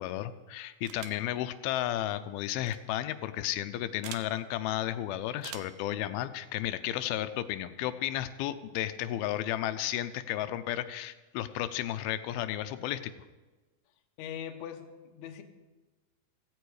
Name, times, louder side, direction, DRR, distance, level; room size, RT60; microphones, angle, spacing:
voice 1, 0.0-13.1, left 13 dB, 85° left, 11 dB, 2.5 m, -33 dB
sound 1, 0.9-1.3 2.6-2.8 4.0-4.3 5.4-5.8, right 11 dB, 85° right, 2.6 m, -44 dB
voice 2, 14.2-15.4, left 9 dB, 65° left, 5 dB, 2.1 m, -41 dB
16.5 x 15.5 x 4.8 m, 1.2 s
omnidirectional pair, 4.3 m